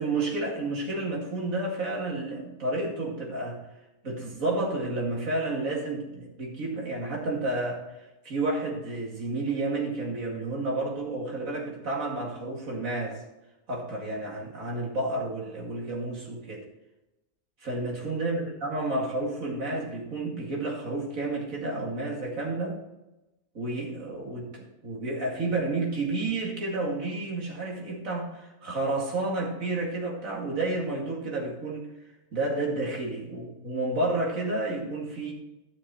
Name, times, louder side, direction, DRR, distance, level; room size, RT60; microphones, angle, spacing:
voice 1, 0.0-3.6 4.0-7.8 8.2-13.2 13.7-16.6 17.6-22.8 23.5-31.9 32.3-35.3, right 2 dB, 65° right, -2 dB, 2.8 m, -30 dB
12.5 x 6.6 x 4.3 m, 0.98 s
omnidirectional pair, 1.6 m